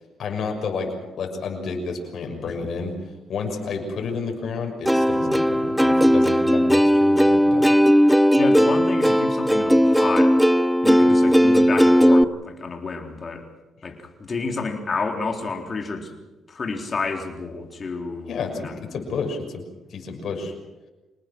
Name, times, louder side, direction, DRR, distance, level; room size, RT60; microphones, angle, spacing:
voice 1, 0.2-3.0 3.3-7.8 18.3-19.6 19.9-20.5, left 4 dB, 60° left, 3 dB, 6.3 m, -30 dB
Plucked string instrument, 4.9-12.2, equal, ahead, 0.7 m, -17 dB
voice 2, 8.4-10.4 10.8-13.5 13.8-16.1 16.5-18.4 18.6-19.0, left 4 dB, 40° left, 3 dB, 4.0 m, -29 dB
27.0 x 19.0 x 6.3 m, 1.1 s
cardioid pair, 90°, 0 cm